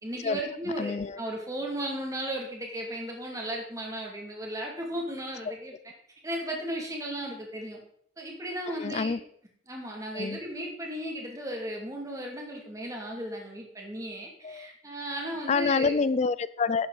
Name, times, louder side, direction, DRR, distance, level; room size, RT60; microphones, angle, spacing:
voice 1, 0.0-5.7 6.2-7.8 8.2-9.1 9.7-16.0, right 1 dB, 15° right, 0 dB, 2.3 m, -35 dB
voice 2, 0.8-1.2 8.8-9.2 10.1-10.4 14.4-14.7 15.5-16.9, left 4 dB, 35° left, 16 dB, 0.4 m, -27 dB
11.5 x 8.4 x 3.9 m, 0.66 s
head